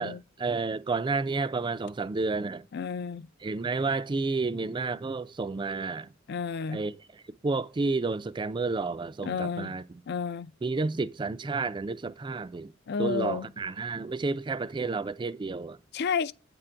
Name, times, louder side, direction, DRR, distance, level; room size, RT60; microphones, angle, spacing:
voice 1, 0.0-2.6 3.4-6.1 6.7-10.0 10.6-12.7 13.0-15.8, right 3 dB, 25° right, 0.3 m, -31 dB
voice 2, 2.7-3.3 6.3-6.8 9.2-9.7 10.1-10.5 12.9-13.5 15.9-16.3, left 5 dB, 55° left, 0.4 m, -31 dB
8.9 x 3.8 x 4.4 m
head